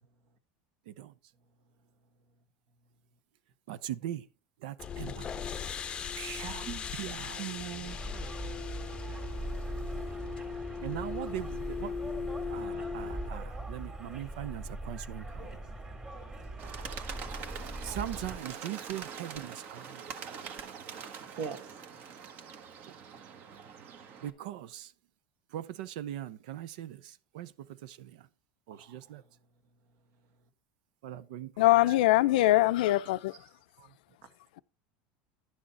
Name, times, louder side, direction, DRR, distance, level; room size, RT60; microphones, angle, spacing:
voice 1, 0.9-1.2 3.7-4.3 4.6-5.5 6.1-6.6 7.0-7.4 10.8-11.9 12.5-15.6 17.8-20.0 22.9-23.0 24.2-24.9 25.5-28.3 28.7-29.2 31.0-32.0 32.3-32.4 33.8-34.0, right 12 dB, 80° right, 0.6 m, -41 dB
sound 1, 4.8-13.3, left 6 dB, 20° left, 0.7 m, -39 dB
voice 2, 6.4-6.9 7.4-8.0 21.4-21.8 28.7-29.0 33.4-33.5, right 8 dB, 60° right, 1.7 m, -41 dB
sound 2, 7.9-18.4, right 2 dB, 20° right, 2.1 m, -40 dB
Bird, 16.6-24.3, right 6 dB, 45° right, 1.2 m, -44 dB
voice 3, 31.6-33.3, left 17 dB, 85° left, 0.5 m, -23 dB
11.0 x 6.4 x 4.1 m
supercardioid pair, 150°, 4 cm